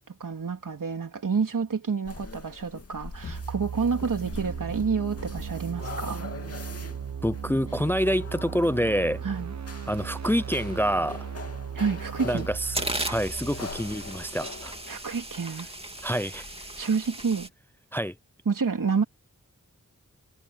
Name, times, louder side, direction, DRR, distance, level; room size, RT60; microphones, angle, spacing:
voice 1, 0.1-6.3 9.2-9.5 11.7-12.5 14.9-15.7 16.8-17.5 18.4-19.0, right 5 dB, 75° right, 3.2 m, -29 dB
sound 1, 2.0-16.8, left 3 dB, 45° left, 2.6 m, -43 dB
sound 2, 3.0-14.7, right 7 dB, 55° right, 1.1 m, -37 dB
voice 2, 7.2-9.2 9.9-11.3 12.2-14.7 16.0-16.4 17.9-18.1, equal, 5° left, 0.5 m, -27 dB
sound 3, 11.9-12.0 12.4-17.5, right 1 dB, 15° right, 2.4 m, -36 dB
wide cardioid pair, 70°, 32 cm